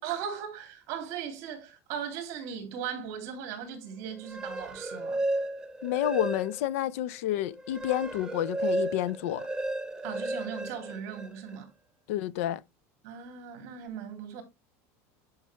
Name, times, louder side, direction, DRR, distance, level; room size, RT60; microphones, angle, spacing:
voice 1, 0.0-5.3 10.0-11.7 13.0-14.4, right 8 dB, 45° right, 3.4 m, -38 dB
sound 1, 4.1-6.8 7.2-11.6, right 1 dB, 10° right, 0.7 m, -34 dB
voice 2, 5.8-9.5 12.1-12.6, left 13 dB, 70° left, 0.7 m, -29 dB
10.5 x 5.8 x 3.4 m
supercardioid pair, 170°, 8 cm